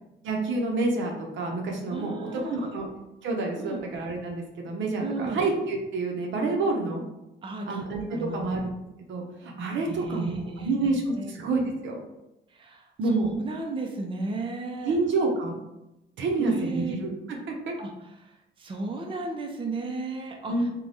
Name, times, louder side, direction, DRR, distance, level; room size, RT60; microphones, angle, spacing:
voice 1, 0.2-2.9 3.2-7.0 7.7-8.7 9.1-12.0 13.0-13.3 14.8-15.6 16.2-17.1 17.5-17.8 20.5-20.6, right 3 dB, 70° right, 1 dB, 0.6 m, -28 dB
voice 2, 1.9-2.8 3.6-3.8 5.0-5.4 7.4-7.8 8.1-8.6 9.9-10.8 11.1-11.3 12.5-14.9 16.4-17.0 17.8-17.9 18.6-20.5, right 3 dB, 25° right, 1 dB, 0.5 m, -34 dB
3.3 x 2.2 x 2.6 m, 0.92 s
cardioid pair, 90°, 20 cm